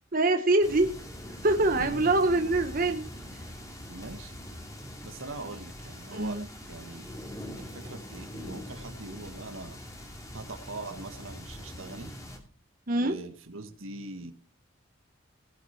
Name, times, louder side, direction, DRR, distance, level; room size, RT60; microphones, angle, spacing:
voice 1, 0.1-0.9 1.4-3.0 6.1-6.4 12.9-13.2, right 2 dB, 45° right, 6 dB, 0.9 m, -24 dB
sound 1, 0.6-12.4, equal, 15° left, 2.4 m, -43 dB
voice 2, 1.8-2.2 3.9-4.3 5.0-6.4 6.7-7.0 7.6-9.8 10.3-12.2 12.9-14.3, right 2 dB, 85° right, 7 dB, 1.7 m, -42 dB
18.5 x 6.6 x 4.4 m, 0.40 s
head